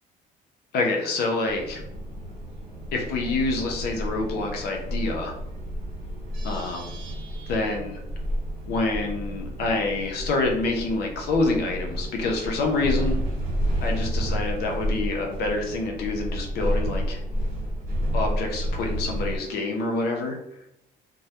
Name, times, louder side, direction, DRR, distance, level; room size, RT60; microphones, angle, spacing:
voice 1, 0.7-1.8 2.9-5.3 6.4-6.9 7.5-8.0 8.7-13.2 13.8-17.2 18.1-20.6, left 3 dB, 70° left, 1 dB, 0.5 m, -27 dB
sound 1, 1.5-19.4, equal, 55° right, 1.0 m, -30 dB
2.2 x 2.0 x 2.8 m, 0.81 s
cardioid pair, 110°, 17 cm